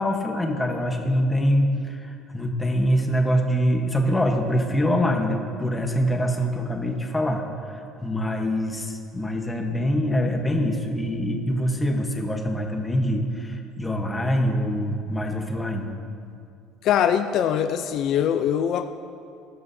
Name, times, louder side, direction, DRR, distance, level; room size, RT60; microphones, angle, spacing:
voice 1, 0.0-15.9, equal, 10° left, 3 dB, 1.1 m, -24 dB
voice 2, 16.8-18.9, left 9 dB, 55° left, 9 dB, 0.5 m, -22 dB
20.0 x 12.0 x 2.7 m, 2.4 s
cardioid pair, 160°, 0 cm